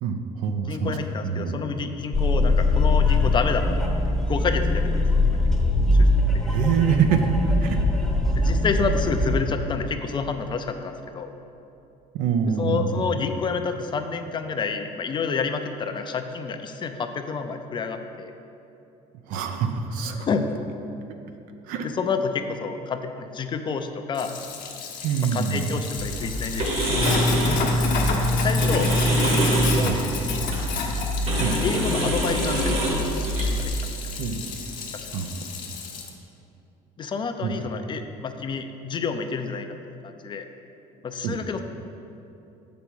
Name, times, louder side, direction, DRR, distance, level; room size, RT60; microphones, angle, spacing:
voice 1, 0.0-1.0 1.2-1.6 6.5-7.2 7.6-7.8 12.1-13.1 19.3-20.3 21.7-21.9 25.0-25.7 29.8-30.0 31.4-31.6 34.2-34.4 35.1-35.4 37.4-37.5 38.2-38.3 41.2-41.4, right 7 dB, 75° right, 6 dB, 0.6 m, -25 dB
voice 2, 0.7-3.9 4.3-5.1 5.3-6.1 6.4-6.5 8.3-11.3 12.6-18.3 20.1-20.5 21.8-24.3 25.3-26.7 28.3-28.9 29.8-30.5 31.6-32.8 33.5-33.7 34.9-35.1 37.0-40.4 41.0-41.6, left 5 dB, 35° left, 7 dB, 0.5 m, -29 dB
sound 1, 2.1-9.4, left 2 dB, ahead, 0.8 m, -21 dB
Sink (filling or washing), 24.1-36.1, left 2 dB, 65° left, 1.0 m, -28 dB
sound 2, 26.0-33.7, equal, 50° right, 1.4 m, -26 dB
7.0 x 5.2 x 4.6 m, 2.8 s
cardioid pair, 105°, 14 cm